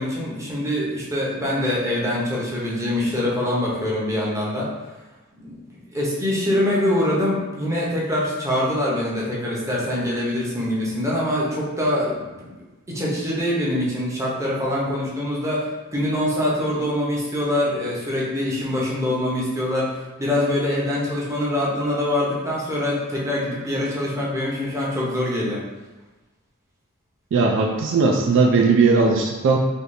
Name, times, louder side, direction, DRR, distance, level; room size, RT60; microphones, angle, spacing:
voice 1, 0.0-4.7 5.3-5.6 5.9-12.5 12.9-25.6, left 1 dB, 15° right, -5 dB, 0.7 m, -24 dB
voice 2, 27.3-29.6, right 4 dB, 60° right, 2 dB, 0.3 m, -18 dB
3.5 x 2.7 x 2.6 m, 1.1 s
head